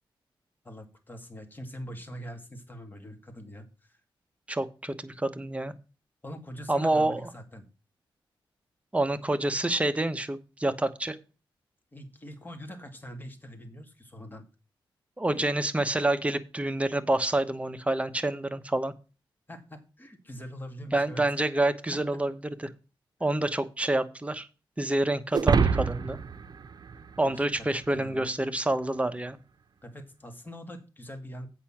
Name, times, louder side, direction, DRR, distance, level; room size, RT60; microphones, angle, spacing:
voice 1, 0.6-4.0 6.2-7.7 11.9-14.5 15.3-15.5 19.5-21.2 21.9-22.2 23.2-23.3 27.2-28.3 29.8-31.5, equal, 20° left, 6 dB, 2.2 m, -43 dB
voice 2, 4.5-5.7 6.7-7.2 8.9-11.2 15.2-18.9 20.9-22.3 22.6-22.7 23.2-24.5 24.8-26.2 27.2-29.4, right 1 dB, 15° right, 10 dB, 1.0 m, -27 dB
sound 1, 25.3-27.8, right 5 dB, 50° right, 0.8 m, -27 dB
8.3 x 5.8 x 5.8 m, 0.32 s
cardioid pair, 85°, 9 cm